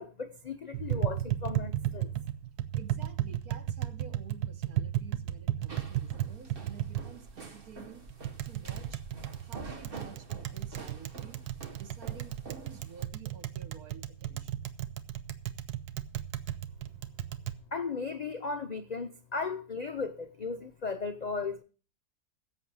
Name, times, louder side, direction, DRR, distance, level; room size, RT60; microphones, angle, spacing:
voice 1, 0.0-2.1 17.7-21.6, left 4 dB, 75° left, 0.3 m, -36 dB
Tap, 0.7-17.6, right 12 dB, 90° right, 1.3 m, -35 dB
voice 2, 2.7-8.0 8.4-9.1 9.4-14.9 15.9-16.0 16.9-17.0, right 6 dB, 70° right, 1.5 m, -51 dB
sound 1, 5.7-13.1, right 3 dB, 40° right, 1.4 m, -47 dB
16.0 x 7.5 x 4.7 m
omnidirectional pair, 1.6 m